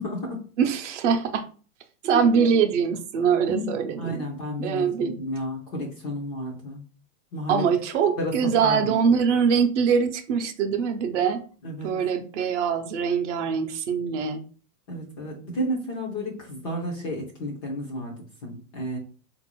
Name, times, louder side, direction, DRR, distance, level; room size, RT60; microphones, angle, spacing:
voice 1, 0.0-0.4 2.1-2.5 3.5-3.7 4.0-6.8 7.3-7.7 8.2-8.3 8.6-9.0 11.6-11.9 14.9-18.1 18.4-19.0, equal, 20° left, -1 dB, 0.4 m, -31 dB
voice 2, 0.6-1.4 2.0-4.3 4.6-5.2 7.5-11.4 11.8-14.4, right 6 dB, 45° right, 6 dB, 0.6 m, -23 dB
3.9 x 2.6 x 2.9 m, 0.39 s
hypercardioid pair, 140°, 49 cm